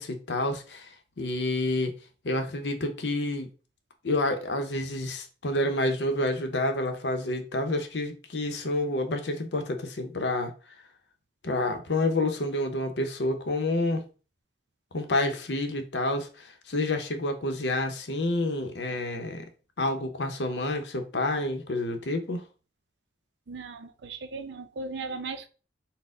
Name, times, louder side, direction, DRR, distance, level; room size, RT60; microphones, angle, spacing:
voice 1, 0.0-2.0 2.2-3.5 4.0-10.5 11.4-14.0 14.9-19.5 19.8-22.4, left 2 dB, 85° left, 0.7 m, -29 dB
voice 2, 23.5-25.5, right 3 dB, 85° right, 0.5 m, -37 dB
4.2 x 2.1 x 3.6 m
head